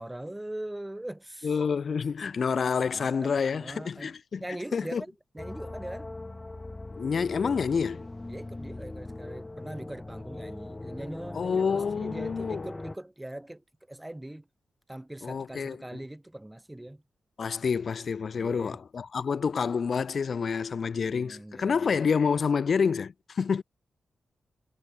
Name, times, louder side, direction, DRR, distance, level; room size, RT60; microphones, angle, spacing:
voice 1, 0.0-1.6 2.8-6.1 8.3-14.5 14.9-17.0 18.4-18.8 21.0-21.9, right 1 dB, 10° right, 3.3 m, -41 dB
voice 2, 1.4-4.4 4.7-5.0 7.0-8.1 11.3-12.6 15.2-16.0 17.4-23.6, left 6 dB, 55° left, 0.7 m, -28 dB
sound 1, 5.4-13.0, left 2 dB, 20° left, 1.2 m, -40 dB
wide cardioid pair, 105°, 0 cm